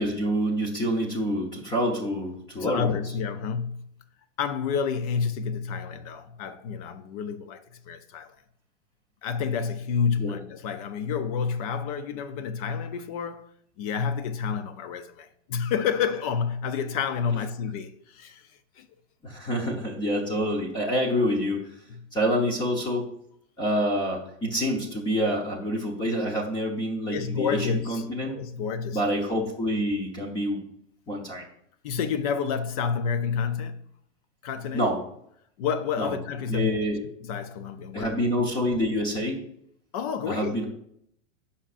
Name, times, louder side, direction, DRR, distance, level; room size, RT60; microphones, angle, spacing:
voice 1, 0.0-2.9 10.2-10.3 19.2-21.6 22.1-23.1 23.6-28.4 28.9-30.6 31.1-31.5 34.7-35.0 36.0-36.2 36.5-37.0 37.9-39.4 40.3-40.6, equal, 10° left, 0.9 m, -27 dB
voice 2, 2.6-3.9 4.4-8.4 9.2-13.5 13.8-18.5 18.8-18.9 21.9-22.1 27.1-28.0 28.3-29.1 31.8-33.8 34.4-34.8 35.6-36.7 37.2-38.2 39.9-40.6, left 6 dB, 30° left, 0.5 m, -29 dB
14.5 x 5.6 x 2.5 m
supercardioid pair, 165°, 35 cm